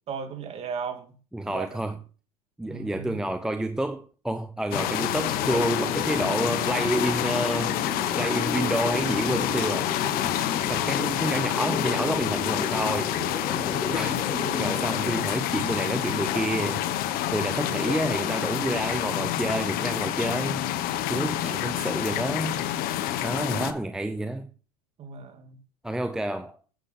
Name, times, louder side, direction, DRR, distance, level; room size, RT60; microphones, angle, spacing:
voice 1, 0.1-1.1 1.4-1.8 2.6-3.2 10.6-10.9 13.5-14.0 25.0-25.6, right 6 dB, 30° right, 2.3 m, -37 dB
voice 2, 1.3-2.0 2.6-7.8 8.1-9.9 10.6-13.2 13.9-14.2 14.6-16.8 17.3-20.6 21.1-22.6 23.2-24.5 25.8-26.6, right 1 dB, 5° right, 0.6 m, -29 dB
sound 1, 4.7-23.7, left 12 dB, 45° left, 1.2 m, -28 dB
sound 2, 5.2-15.2, left 4 dB, 15° left, 2.3 m, -34 dB
10.0 x 7.9 x 5.6 m
supercardioid pair, 130°, 20 cm